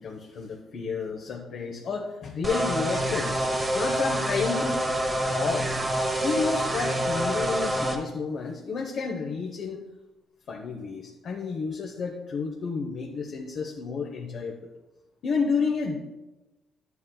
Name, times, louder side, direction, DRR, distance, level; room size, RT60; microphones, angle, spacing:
voice 1, 0.0-4.9 5.3-5.7 6.2-9.8 10.5-14.5 15.2-16.0, left 5 dB, 65° left, 0 dB, 1.0 m, -31 dB
sound 1, 2.4-8.0, right 1 dB, 25° right, 1.1 m, -27 dB
11.0 x 8.2 x 2.3 m, 1.1 s
cardioid pair, 90°, 0 cm